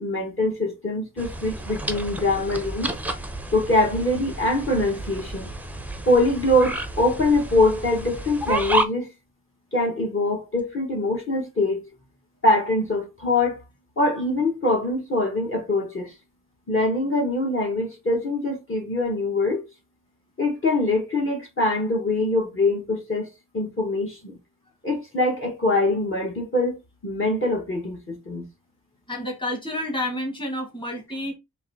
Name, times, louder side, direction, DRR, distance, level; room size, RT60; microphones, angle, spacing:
voice 1, 0.0-2.9 3.5-5.5 6.1-9.1 9.7-11.8 12.4-13.6 14.0-16.1 16.7-19.6 20.4-23.3 23.5-24.4 24.8-26.7 27.0-28.4, left 2 dB, 35° left, 1.4 m, -23 dB
sound 1, 1.2-8.8, right 2 dB, 5° right, 0.6 m, -31 dB
voice 2, 29.1-31.4, left 1 dB, 15° left, 1.5 m, -29 dB
4.0 x 2.6 x 4.0 m
wide cardioid pair, 105°, 37 cm